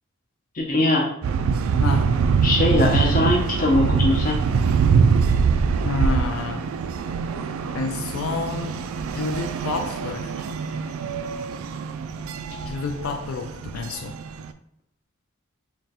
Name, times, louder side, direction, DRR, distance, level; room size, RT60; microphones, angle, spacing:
voice 1, 0.5-1.1 2.4-4.4, left 2 dB, 40° left, 0 dB, 0.7 m, -21 dB
sound 1, 1.2-14.5, right 5 dB, 80° right, 0.3 m, -23 dB
voice 2, 5.8-6.7 7.7-8.7 9.1-10.3 12.7-14.1, left 4 dB, 80° left, 4 dB, 0.4 m, -29 dB
3.7 x 2.3 x 4.1 m, 0.69 s
head